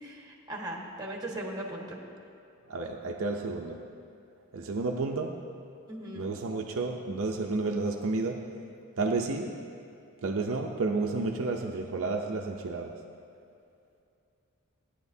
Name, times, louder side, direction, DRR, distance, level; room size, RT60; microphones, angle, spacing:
voice 1, 0.0-2.0 5.9-6.3, right 1 dB, 20° right, -2 dB, 1.4 m, -38 dB
voice 2, 2.7-3.8 4.5-5.4 6.2-8.5 9.0-9.5 10.2-12.9, right 3 dB, 60° right, 1 dB, 0.6 m, -31 dB
16.0 x 10.0 x 2.7 m, 2.5 s
head